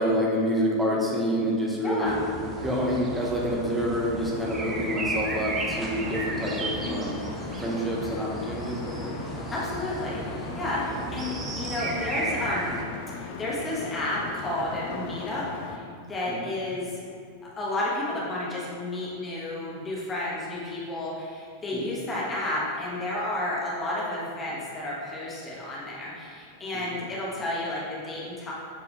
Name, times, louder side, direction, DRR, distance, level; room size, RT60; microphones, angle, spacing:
voice 1, 0.0-2.2 2.6-7.2 7.6-9.2 10.7-11.0 16.3-16.5 21.7-21.9 26.7-26.8, equal, 5° right, -4 dB, 1.4 m, -28 dB
voice 2, 1.8-2.2 9.1-9.2 9.5-12.8 13.1-17.0 17.6-28.5, left 1 dB, 20° left, -6 dB, 1.7 m, -31 dB
sound 1, 2.0-12.8, right 2 dB, 20° right, 0.8 m, -34 dB
sound 2, 3.2-15.8, left 6 dB, 50° left, 0.5 m, -39 dB
8.7 x 4.6 x 3.4 m, 2.4 s
figure-of-eight pair, 90°, 0 cm